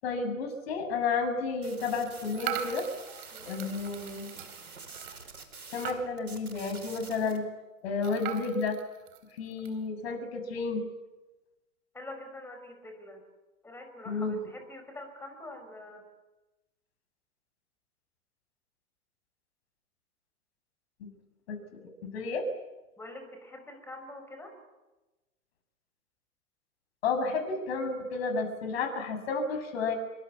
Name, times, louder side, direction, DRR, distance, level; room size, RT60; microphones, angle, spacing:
voice 1, 0.0-2.8 3.4-4.3 5.7-7.4 7.8-8.8 9.3-10.8 14.1-14.4 21.0-21.1 21.5-22.5 27.0-30.0, left 4 dB, 45° left, 6 dB, 7.0 m, -31 dB
sound 1, 1.6-5.9 6.2-7.4, right 4 dB, 80° right, 5.2 m, -47 dB
sound 2, 2.3-6.4 6.8-6.9 7.1-7.2 8.0-9.8, right 11 dB, 35° right, 3.8 m, -40 dB
voice 2, 11.9-13.2 13.6-16.0 23.0-24.5, left 1 dB, 5° left, 5 dB, 5.5 m, -45 dB
27.0 x 24.5 x 8.6 m, 1.1 s
figure-of-eight pair, 125°, 43 cm